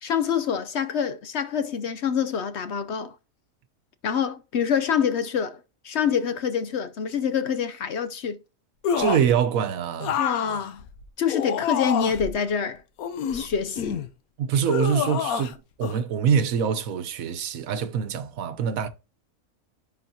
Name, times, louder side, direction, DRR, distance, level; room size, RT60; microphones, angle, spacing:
voice 1, 0.0-3.2 4.0-5.6 5.8-8.4 10.2-10.8 11.2-12.8 13.3-14.0, left 7 dB, 60° left, 0.8 m, -26 dB
sound 1, 8.8-9.4 10.0-12.3 13.0-14.1 14.7-15.5 15.8-16.0, left 8 dB, 85° left, 1.2 m, -28 dB
voice 2, 8.9-10.2 14.4-18.9, right 7 dB, 75° right, 1.2 m, -24 dB
10.0 x 4.3 x 2.8 m
omnidirectional pair, 1.5 m